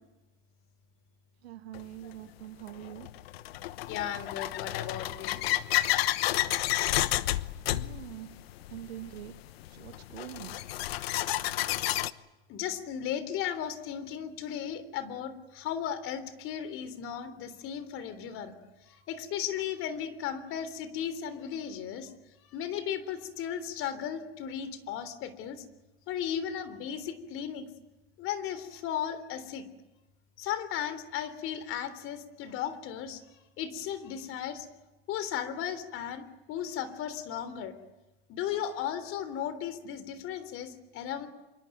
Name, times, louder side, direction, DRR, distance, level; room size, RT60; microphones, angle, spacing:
voice 1, 1.4-3.1 7.7-8.4 8.7-9.4 9.7-10.6, right 13 dB, 85° right, 9 dB, 2.2 m, -44 dB
sound 1, 1.7-1.8 2.7-12.1, left 15 dB, 75° left, 1.1 m, -31 dB
voice 2, 3.9-5.4 5.8-5.9 12.5-18.5 18.9-22.1 22.5-25.6 26.1-27.7 28.2-29.6 30.4-33.2 33.6-34.7 35.1-37.7 38.3-41.3, left 9 dB, 45° left, 13 dB, 3.5 m, -36 dB
26.5 x 23.5 x 9.2 m, 1.1 s
supercardioid pair, 125°, 30 cm